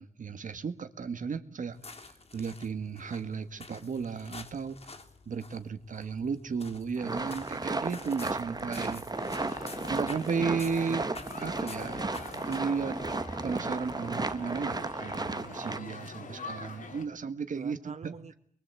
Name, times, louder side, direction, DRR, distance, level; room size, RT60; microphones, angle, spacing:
voice 1, 0.0-4.9 5.3-9.0 9.9-12.1 12.5-13.0 13.4-18.1, right 5 dB, 75° right, 10 dB, 1.9 m, -34 dB
sound 1, 1.7-12.9, left 3 dB, 50° left, 3.3 m, -49 dB
sound 2, 7.0-15.8, right 3 dB, 30° right, 1.5 m, -34 dB
voice 2, 8.7-9.5 16.0-16.8 17.5-18.3, right 5 dB, 60° right, 7 dB, 1.6 m, -49 dB
sound 3, 9.1-17.0, left 4 dB, 85° left, 4.1 m, -44 dB
24.5 x 22.5 x 8.4 m, 0.63 s
wide cardioid pair, 85°, 13 cm